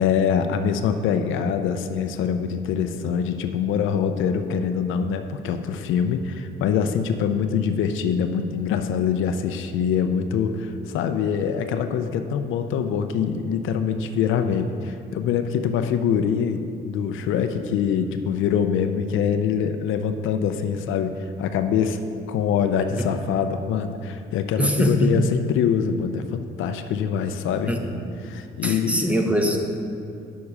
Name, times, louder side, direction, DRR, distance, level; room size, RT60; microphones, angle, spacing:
voice 1, 0.0-22.0 22.3-27.7 28.2-29.1, left 7 dB, 85° left, 8 dB, 0.5 m, -24 dB
voice 2, 24.6-25.2 27.7-28.1 28.6-29.6, equal, 5° right, 3 dB, 0.8 m, -22 dB
7.1 x 5.5 x 4.9 m, 2.5 s
cardioid pair, 90°, 20 cm